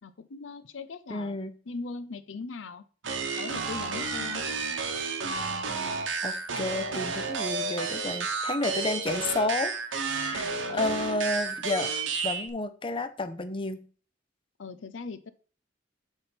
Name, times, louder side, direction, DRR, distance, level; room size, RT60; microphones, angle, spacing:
voice 1, 0.0-1.4 1.7-2.8 3.4-4.4 10.3-10.9 14.6-15.3, left 4 dB, 75° left, 13 dB, 0.6 m, -40 dB
voice 2, 1.1-1.5 6.2-9.7 10.2-11.9 12.2-13.8, left 2 dB, 30° left, 10 dB, 0.6 m, -31 dB
sound 1, 3.0-12.5, right 4 dB, 85° right, 1.2 m, -31 dB
8.2 x 3.5 x 5.9 m, 0.41 s
head